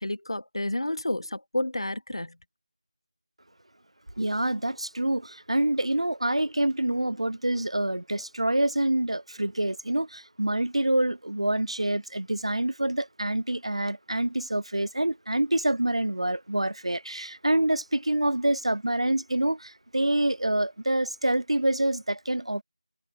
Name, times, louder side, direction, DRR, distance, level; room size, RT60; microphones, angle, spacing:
voice 1, 0.0-2.3, left 1 dB, 55° left, 0.9 m, -30 dB
voice 2, 4.2-22.6, right 1 dB, 65° right, 0.6 m, -26 dB
figure-of-eight pair, 170°, 3 cm